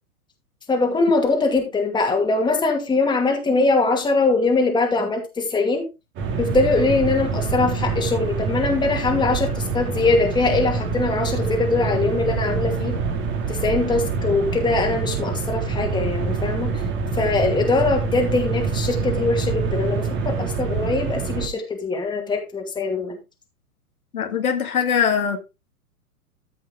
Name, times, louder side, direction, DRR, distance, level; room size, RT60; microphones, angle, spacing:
voice 1, 0.7-5.8 6.4-13.0 13.5-16.8 17.2-23.2, left 3 dB, 10° left, 2.4 m, -22 dB
sound 1, 6.2-21.5, right 5 dB, 25° right, 2.2 m, -26 dB
voice 2, 24.1-25.4, left 7 dB, 70° left, 2.2 m, -21 dB
13.5 x 5.6 x 3.7 m
figure-of-eight pair, 115°, 44 cm